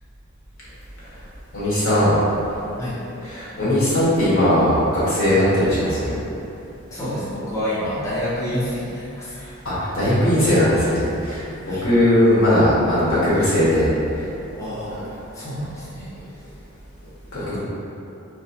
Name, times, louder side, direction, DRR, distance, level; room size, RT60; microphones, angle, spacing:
voice 1, 1.5-2.1 3.2-6.2 9.4-13.9 14.9-15.0 17.3-17.6, left 1 dB, 90° left, -10 dB, 1.4 m, -19 dB
voice 2, 6.9-9.3 11.7-11.8 14.6-15.0 15.3-16.1 17.4-17.6, equal, 15° left, -11 dB, 0.7 m, -28 dB
3.2 x 3.0 x 2.7 m, 2.8 s
head